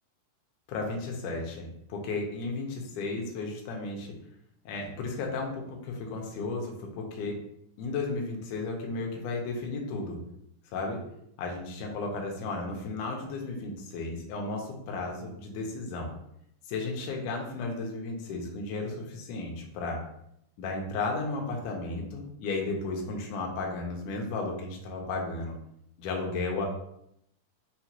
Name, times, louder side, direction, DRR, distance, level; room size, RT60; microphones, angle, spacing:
voice 1, 0.7-4.1 4.7-7.4 7.8-10.2 10.7-11.0 11.4-16.1 16.7-20.0 20.6-25.6 26.0-26.7, left 3 dB, 75° left, 1 dB, 2.0 m, -34 dB
5.8 x 2.2 x 2.8 m, 0.76 s
omnidirectional pair, 3.9 m